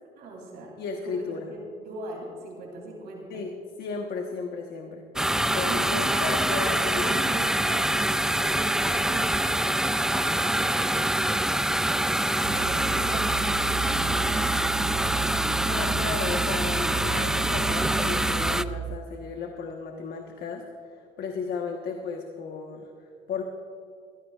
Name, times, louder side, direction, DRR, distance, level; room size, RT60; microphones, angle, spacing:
voice 1, 0.2-3.4 5.7-6.2 6.4-11.6 12.2-14.4, right 2 dB, 75° right, -1 dB, 3.0 m, -40 dB
voice 2, 0.8-1.5 3.3-5.0 5.5-7.1 15.7-20.6 21.2-22.9 23.3-23.4, left 5 dB, 65° left, 3 dB, 1.2 m, -34 dB
sound 1, 5.2-18.6, right 1 dB, 5° right, 0.3 m, -25 dB
sound 2, 12.4-19.0, right 9 dB, 90° right, 0.6 m, -34 dB
21.5 x 16.0 x 2.4 m, 2.3 s
cardioid pair, 110°, 17 cm